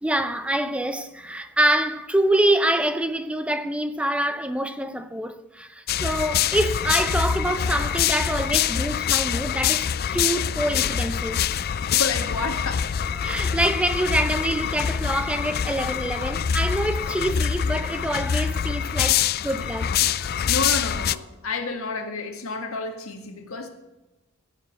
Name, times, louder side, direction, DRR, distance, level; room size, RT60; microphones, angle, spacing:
voice 1, 0.0-11.4 13.2-20.3, right 1 dB, 5° right, 0.5 m, -26 dB
sound 1, 5.9-21.2, left 8 dB, 45° left, 0.4 m, -25 dB
voice 2, 11.9-13.1 20.0-23.7, left 3 dB, 65° left, 1.7 m, -31 dB
16.0 x 7.2 x 8.0 m
head